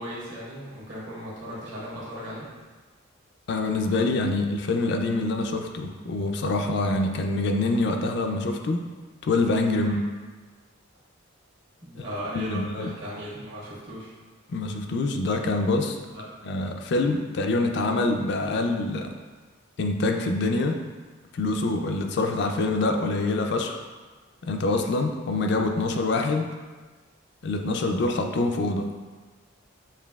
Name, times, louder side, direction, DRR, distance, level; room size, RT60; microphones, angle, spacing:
voice 1, 0.0-2.5 9.7-10.0 11.8-14.1 16.1-16.3, equal, 60° right, -7 dB, 1.4 m, -37 dB
voice 2, 3.5-8.8 9.2-10.0 12.3-13.0 14.5-16.0 16.4-19.1 19.8-20.8 21.3-23.8 24.5-26.5 27.4-28.9, left 2 dB, 55° left, 4 dB, 0.3 m, -25 dB
7.0 x 2.6 x 2.3 m, 1.4 s
head